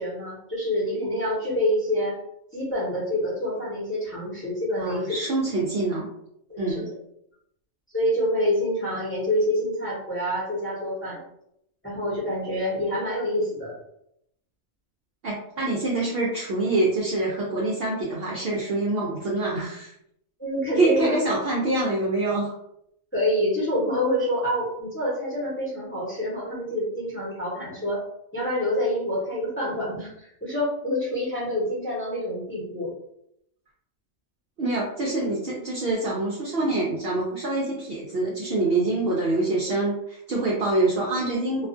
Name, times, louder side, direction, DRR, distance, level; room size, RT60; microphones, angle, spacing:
voice 1, 0.0-2.2 2.5-5.1 6.5-6.8 7.9-11.2 11.8-13.7 20.4-21.1 23.1-28.0 28.3-32.9, left 1 dB, 10° left, -7 dB, 0.7 m, -27 dB
voice 2, 4.8-6.1 6.6-6.9 15.2-19.9 20.8-22.5 34.6-41.7, right 2 dB, 65° right, -4 dB, 0.6 m, -25 dB
2.4 x 2.2 x 2.5 m, 0.76 s
omnidirectional pair, 1.4 m